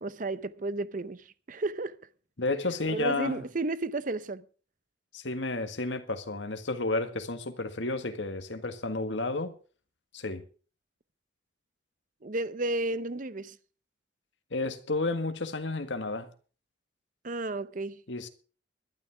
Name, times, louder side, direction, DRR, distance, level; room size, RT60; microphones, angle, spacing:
voice 1, 0.0-2.0 2.9-4.4 12.2-13.6 17.2-18.0, right 2 dB, 45° right, 0.8 m, -32 dB
voice 2, 2.4-3.4 5.1-9.5 10.1-10.4 14.5-16.3 18.1-18.3, left 2 dB, 85° left, 1.7 m, -31 dB
21.0 x 12.0 x 3.5 m
head